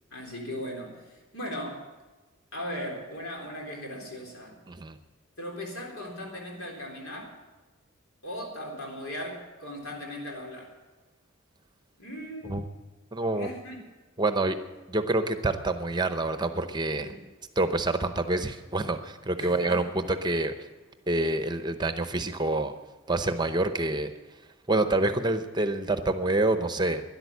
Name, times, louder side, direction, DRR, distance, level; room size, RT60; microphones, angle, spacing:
voice 1, 0.1-1.9 2.5-4.6 5.4-7.4 8.2-10.7 12.0-12.6 13.3-13.8 17.0-17.2 19.4-19.9, equal, 85° left, 0 dB, 3.7 m, -38 dB
voice 2, 4.7-5.0 12.5-12.6 13.1-13.5 14.2-14.5 14.9-17.1 17.6-20.5 21.1-22.7 23.1-24.1 24.7-27.0, right 2 dB, 20° right, 9 dB, 0.7 m, -27 dB
12.5 x 11.0 x 8.3 m, 1.2 s
head